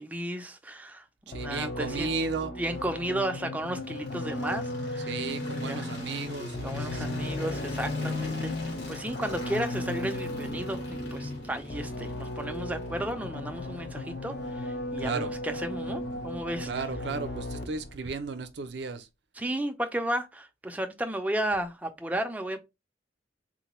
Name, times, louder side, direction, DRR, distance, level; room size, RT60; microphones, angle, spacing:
voice 1, 0.0-2.1 2.6-5.1 5.5-5.9 6.6-16.7 19.4-22.6, right 1 dB, 10° right, 0.4 m, -34 dB
sound 1, 1.3-18.0, left 1 dB, 60° left, 0.5 m, -36 dB
voice 2, 1.3-2.6 5.0-7.2 15.0-15.3 16.6-19.1, right 4 dB, 70° right, 0.5 m, -34 dB
sound 2, 3.7-17.8, left 2 dB, 75° left, 1.8 m, -39 dB
3.8 x 2.2 x 2.9 m
head